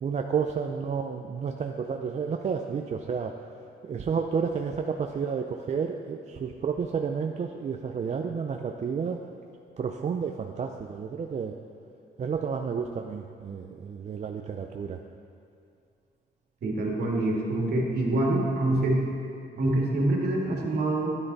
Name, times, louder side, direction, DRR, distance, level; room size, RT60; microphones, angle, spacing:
voice 1, 0.0-3.3 3.8-9.2 9.8-11.5 12.2-15.0, right 6 dB, 40° right, 4 dB, 0.5 m, -31 dB
voice 2, 16.6-19.0 19.6-21.2, right 2 dB, 65° right, -2 dB, 2.2 m, -25 dB
12.0 x 10.0 x 4.1 m, 2.5 s
cardioid pair, 120°, 18 cm